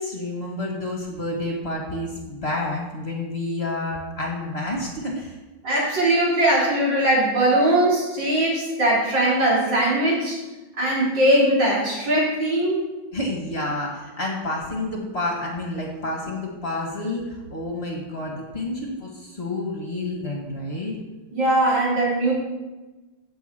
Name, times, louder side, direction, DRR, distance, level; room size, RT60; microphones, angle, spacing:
voice 1, 0.0-5.4 13.1-21.0, left 2 dB, 30° left, -1 dB, 2.2 m, -29 dB
voice 2, 5.6-10.4 10.8-12.8 21.3-22.3, right 1 dB, 60° right, -5 dB, 4.3 m, -20 dB
15.5 x 7.8 x 4.6 m, 1.1 s
omnidirectional pair, 2.2 m